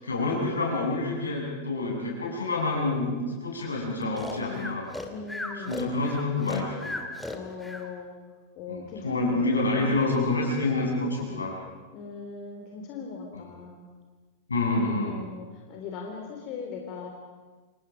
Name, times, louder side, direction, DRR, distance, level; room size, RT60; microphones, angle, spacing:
voice 1, 0.0-3.1 3.4-4.9 5.5-6.9 8.7-11.6 13.3-13.4 14.5-15.1, left 2 dB, 75° left, -2 dB, 7.6 m, -27 dB
Breathing, 4.2-7.9, left 2 dB, 5° left, 2.9 m, -36 dB
voice 2, 5.1-5.8 7.3-8.1 8.5-9.7 11.9-13.8 15.1-17.1, left 5 dB, 40° left, 1 dB, 3.5 m, -39 dB
30.0 x 27.5 x 5.3 m, 1.3 s
figure-of-eight pair, 90°, 0 cm